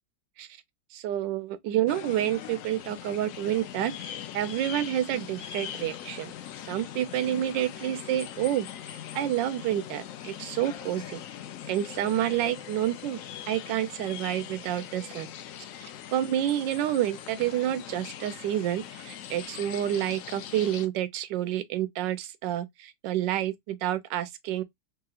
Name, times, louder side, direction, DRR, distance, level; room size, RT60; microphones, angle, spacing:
voice 1, 0.9-6.3 6.7-11.2 11.7-13.2 13.5-15.3 15.8-24.6, right 12 dB, 80° right, 1.2 m, -29 dB
sound 1, 1.9-20.9, left 10 dB, 80° left, 0.7 m, -41 dB
3.3 x 2.8 x 2.3 m
omnidirectional pair, 2.0 m